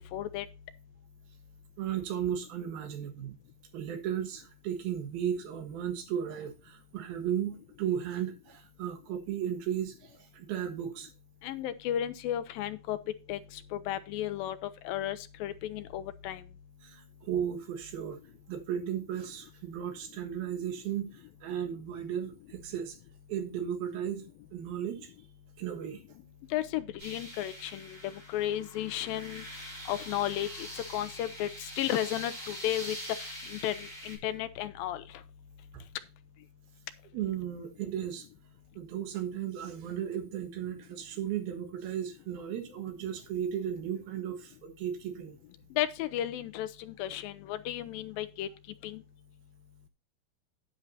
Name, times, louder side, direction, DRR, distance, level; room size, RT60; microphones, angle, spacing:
voice 1, 0.1-0.5 11.4-13.0 13.3-14.6 14.8-16.4 26.5-29.5 29.9-35.0 45.8-48.5 48.8-49.0, left 12 dB, 80° left, 2.4 m, -34 dB
voice 2, 1.8-3.4 3.7-11.1 16.8-18.2 18.5-23.0 23.3-24.3 24.5-25.1 25.6-26.0 35.7-35.8 37.1-38.3 38.8-45.4, right 9 dB, 80° right, 3.3 m, -35 dB
sound 1, 27.0-34.2, equal, 35° right, 6.9 m, -44 dB
10.5 x 9.8 x 2.7 m
omnidirectional pair, 4.2 m